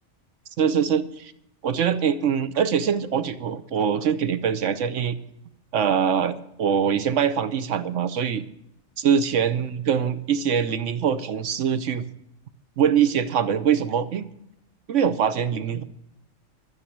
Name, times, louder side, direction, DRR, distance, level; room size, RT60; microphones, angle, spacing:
voice 1, 0.6-1.3 1.6-5.2 5.7-8.4 9.0-12.0 12.8-14.2 14.9-15.8, right 7 dB, 80° right, 12 dB, 1.2 m, -23 dB
12.5 x 9.2 x 8.6 m, 0.80 s
omnidirectional pair, 1.2 m